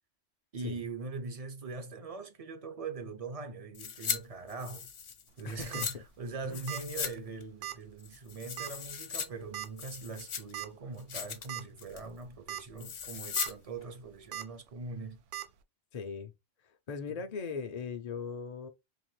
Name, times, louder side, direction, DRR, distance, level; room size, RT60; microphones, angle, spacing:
voice 1, 0.5-4.9 5.4-15.2 17.1-17.2, right 4 dB, 40° right, 0.6 m, -42 dB
sound 1, 3.7-4.2 4.5-5.9 6.5-7.1 7.4-7.5 8.0-9.3 9.6-10.6 11.0-11.5 11.8-12.1 12.8-13.5 13.8-13.9, left 7 dB, 70° left, 1.0 m, -38 dB
voice 2, 5.4-6.0 6.5-6.6 8.4-8.5 15.9-16.3 16.9-18.7, left 5 dB, 45° left, 0.5 m, -39 dB
sound 2, 5.4-5.9 6.7-6.9 7.2-7.3 7.6-7.8 8.6-8.9 9.5-9.7 10.5-10.7 11.1-11.2 11.5-11.6 12.3-12.6 13.0-13.5 14.3-14.4 15.3-15.4, right 13 dB, 85° right, 0.9 m, -39 dB
3.9 x 2.9 x 3.2 m
omnidirectional pair, 1.2 m